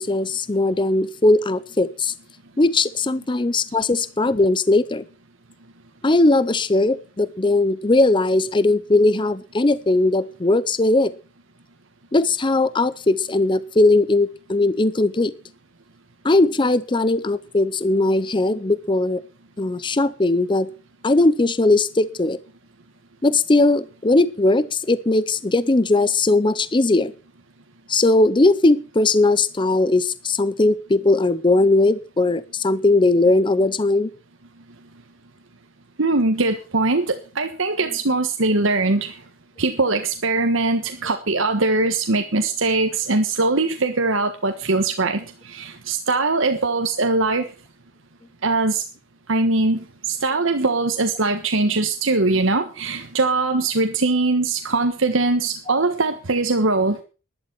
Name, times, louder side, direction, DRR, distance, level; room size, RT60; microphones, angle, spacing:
voice 1, 0.0-2.1 2.6-5.0 6.0-11.1 12.1-15.3 16.2-19.2 19.6-20.7 21.0-22.4 23.2-27.1 27.9-34.1 55.7-55.8, left 2 dB, 25° left, 17 dB, 0.6 m, -19 dB
voice 2, 36.0-39.2 39.6-47.5 48.4-48.9 49.3-57.0, right 3 dB, 70° right, 6 dB, 1.4 m, -21 dB
12.0 x 11.5 x 6.0 m, 0.34 s
head